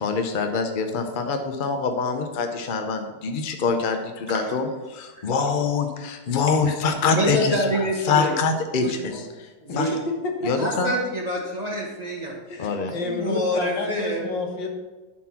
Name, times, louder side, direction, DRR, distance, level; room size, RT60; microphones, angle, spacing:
voice 1, 0.0-9.5 9.8-9.9 10.4-10.9 12.6-12.9, left 5 dB, 60° left, 5 dB, 0.5 m, -25 dB
voice 2, 7.1-8.3 8.8-9.2 9.6-9.9 10.6-12.4 13.0-14.3, equal, 25° right, -2 dB, 1.1 m, -26 dB
voice 3, 9.7-10.5 11.4-11.5 12.5-14.7, left 2 dB, 85° left, 2 dB, 2.0 m, -29 dB
11.5 x 4.3 x 5.8 m, 1.2 s
omnidirectional pair, 1.9 m